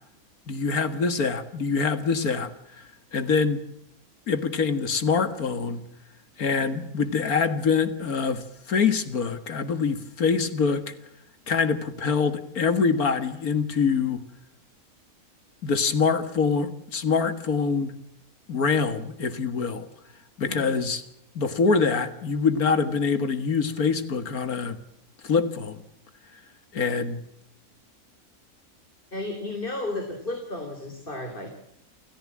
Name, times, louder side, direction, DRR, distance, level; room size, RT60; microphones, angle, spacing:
voice 1, 0.5-2.5 2.8-3.6 4.3-5.8 6.4-10.9 11.5-14.2 15.6-17.9 18.5-19.9 20.4-21.0 21.4-24.8 25.2-25.8 26.7-27.2, left 5 dB, 80° left, 11 dB, 2.2 m, -25 dB
voice 2, 20.4-20.7 29.1-31.5, left 2 dB, 35° left, 4 dB, 3.7 m, -33 dB
28.5 x 15.0 x 7.4 m, 0.79 s
omnidirectional pair, 1.5 m